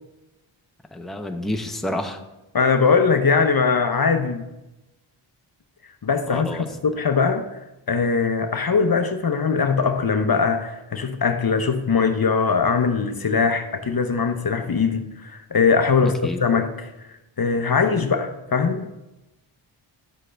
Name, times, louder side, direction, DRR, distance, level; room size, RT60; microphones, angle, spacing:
voice 1, 0.9-2.2 6.3-6.7 16.0-16.4, left 1 dB, ahead, 0.8 m, -29 dB
voice 2, 2.5-4.5 6.0-7.5 7.9-18.9, left 5 dB, 45° left, 0.8 m, -21 dB
11.5 x 7.6 x 3.4 m
cardioid pair, 60°, 50 cm